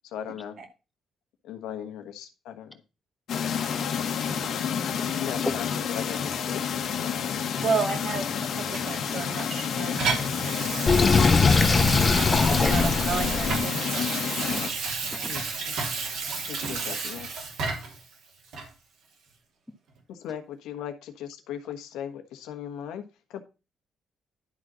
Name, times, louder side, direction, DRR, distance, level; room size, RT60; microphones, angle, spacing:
voice 1, 0.0-0.6 1.4-2.8 5.2-6.6 15.3-15.7 16.5-17.3 20.1-23.0 23.3-23.4, left 9 dB, 90° left, 1.2 m, -38 dB
sound 1, 3.3-14.7, left 7 dB, 65° left, 1.3 m, -29 dB
voice 2, 3.5-3.9 4.3-4.4 5.4-5.5 12.3-13.1 14.5-14.6 15.1-15.3, left 1 dB, 10° left, 1.2 m, -35 dB
voice 3, 7.6-10.0 12.3-13.8, right 5 dB, 60° right, 2.5 m, -31 dB
Water tap faucet / Sink (filling or washing), 8.7-18.0 18.5-18.7, right 4 dB, 80° right, 3.3 m, -32 dB
Sink (filling or washing), 10.9-13.6, left 4 dB, 35° left, 0.7 m, -21 dB
11.0 x 4.0 x 6.1 m
cardioid pair, 90°, 0 cm